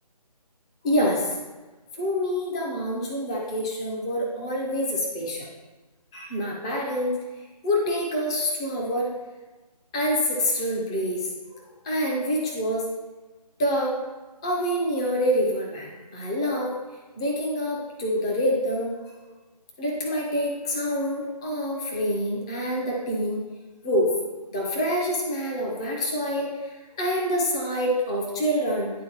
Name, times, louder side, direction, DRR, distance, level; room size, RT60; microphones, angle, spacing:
voice 1, 0.8-1.4 1.9-5.5 6.1-7.1 7.6-9.1 9.9-11.3 11.8-12.9 13.6-14.0 14.4-16.7 17.2-19.1 19.8-23.4 23.8-24.1 24.5-28.9, equal, 10° left, -2 dB, 0.4 m, -26 dB
10.0 x 3.7 x 2.9 m, 1.2 s
figure-of-eight pair, 155°, 21 cm